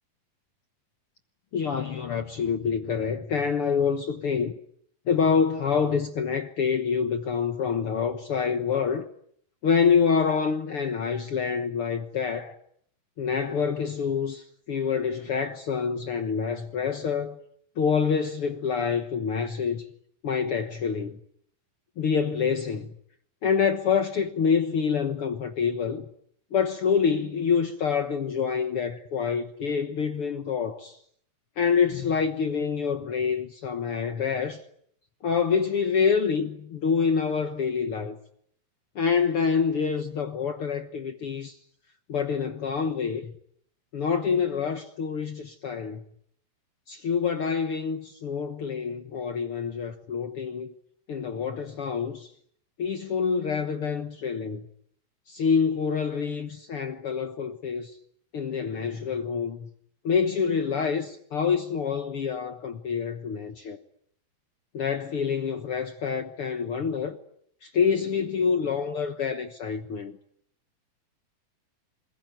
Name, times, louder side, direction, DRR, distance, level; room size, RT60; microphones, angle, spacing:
voice 1, 1.5-4.5 5.1-9.0 9.6-12.6 13.2-17.4 17.8-19.8 20.2-21.2 22.0-22.9 23.4-26.0 26.5-31.0 31.6-34.6 35.2-38.2 38.9-41.6 42.1-43.3 43.9-46.0 46.9-50.7 51.1-52.3 52.8-54.6 55.3-57.9 58.3-59.7 60.0-63.8 64.7-67.2 67.6-70.2, left 6 dB, 65° left, 1.4 m, -26 dB
28.0 x 21.0 x 9.2 m
omnidirectional pair, 4.4 m